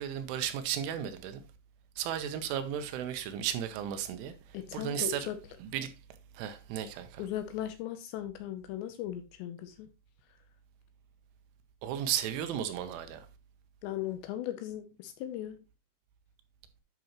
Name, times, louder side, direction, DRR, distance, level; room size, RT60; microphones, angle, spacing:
voice 1, 0.0-1.4 2.0-4.3 4.7-5.3 5.6-5.9 6.3-7.2 11.8-13.3, right 10 dB, 85° right, 3.3 m, -34 dB
voice 2, 4.5-5.4 7.2-9.9 13.8-15.6, left 12 dB, 80° left, 2.7 m, -37 dB
10.5 x 6.1 x 3.0 m
omnidirectional pair, 5.6 m